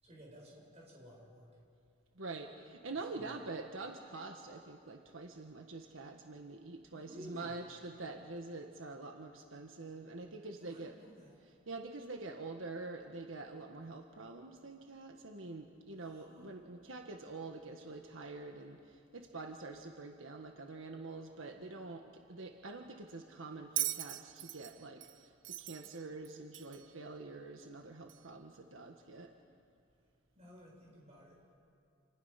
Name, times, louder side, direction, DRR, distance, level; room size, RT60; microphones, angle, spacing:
voice 1, 0.0-1.5 2.9-3.4 6.9-7.6 10.6-11.4 16.0-16.5 30.3-31.4, equal, 35° right, -2 dB, 7.3 m, -55 dB
voice 2, 2.1-11.0 11.7-29.3, right 3 dB, 85° right, 3 dB, 1.5 m, -46 dB
Bell, 23.8-26.9 28.1-28.2, right 14 dB, 70° right, 0.7 m, -40 dB
29.5 x 28.5 x 5.8 m, 2.4 s
head